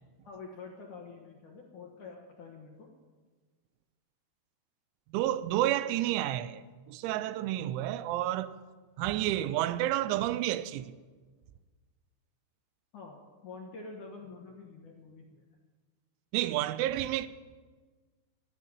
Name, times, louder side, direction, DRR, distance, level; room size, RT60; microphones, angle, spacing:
voice 1, 0.2-2.9 12.9-15.4, left 4 dB, 70° left, 1.9 m, -47 dB
voice 2, 5.1-6.6 6.9-8.6 9.0-10.9 16.3-17.3, right 14 dB, 85° right, 3.0 m, -30 dB
13.0 x 9.2 x 9.5 m
omnidirectional pair, 5.4 m